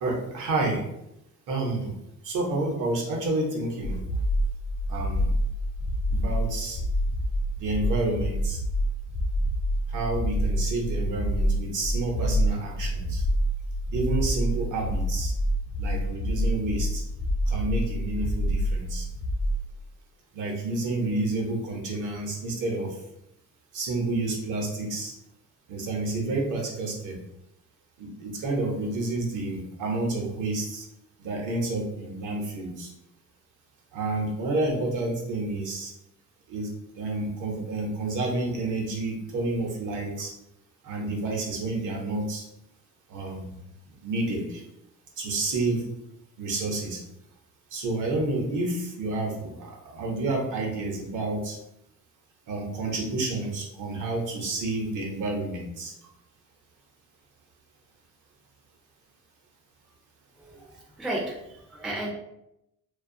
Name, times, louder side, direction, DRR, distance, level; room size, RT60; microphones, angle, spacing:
voice 1, 0.0-0.8 1.5-2.0 2.2-4.0 4.9-5.3 6.1-6.8 7.6-8.6 9.9-13.2 13.9-15.3 15.8-17.0 17.5-19.1 20.3-22.9 23.7-25.1 25.7-27.2 28.0-30.8 31.2-32.9 33.9-35.9 36.5-36.7 36.9-40.3 40.8-42.4 43.1-43.5 43.9-44.6 45.2-45.9 46.4-47.0 47.7-51.6 52.5-55.9, right 2 dB, 60° right, 0 dB, 0.8 m, -29 dB
sound 1, 3.8-19.7, equal, 60° left, 0.5 m, -27 dB
voice 2, 60.3-62.1, right 1 dB, ahead, -3 dB, 0.4 m, -34 dB
2.4 x 2.3 x 2.6 m, 0.84 s
cardioid pair, 125°, 34 cm